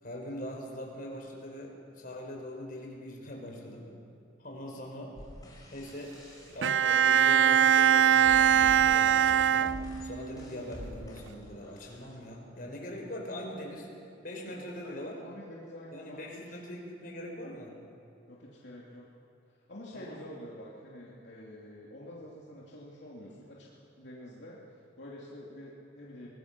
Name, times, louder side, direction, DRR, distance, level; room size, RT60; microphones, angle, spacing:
voice 1, 0.0-3.9 4.4-5.2 5.7-13.9 14.2-15.1 15.9-17.7 19.9-20.2, left 1 dB, 50° left, 0 dB, 4.6 m, -42 dB
sound 1, 5.2-12.2, equal, 20° left, 4.8 m, -47 dB
Bowed string instrument, 6.6-10.3, right 9 dB, 75° right, 0.4 m, -22 dB
voice 2, 14.5-16.6 18.3-19.1 19.7-24.6 25.0-26.3, left 1 dB, 70° left, -5 dB, 2.8 m, -47 dB
24.0 x 19.5 x 6.0 m, 2.8 s
head